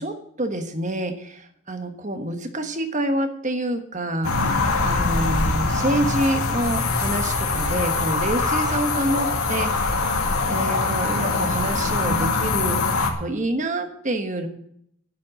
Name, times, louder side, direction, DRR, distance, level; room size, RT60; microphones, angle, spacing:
voice 1, 0.0-14.5, right 1 dB, 35° right, 7 dB, 1.3 m, -27 dB
sound 1, 4.2-13.1, left 3 dB, 80° left, 2.1 m, -23 dB
11.5 x 7.7 x 8.8 m, 0.72 s
head